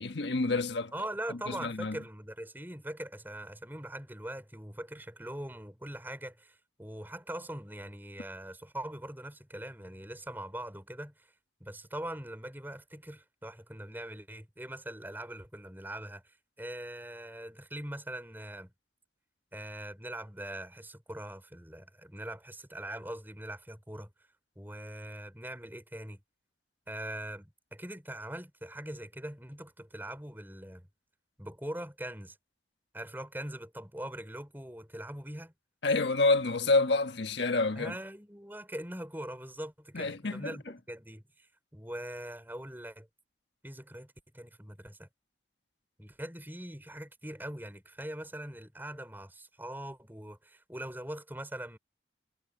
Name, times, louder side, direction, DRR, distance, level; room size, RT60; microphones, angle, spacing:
voice 1, 0.0-0.9 1.5-2.0 35.8-37.9 39.9-40.5, left 3 dB, 80° left, 1.4 m, -28 dB
voice 2, 0.9-11.3 11.6-18.7 19.5-24.1 24.5-26.2 26.9-30.9 31.4-32.4 32.9-35.5 37.7-43.1 43.6-45.1 46.0-51.8, right 1 dB, 10° right, 5.1 m, -42 dB
head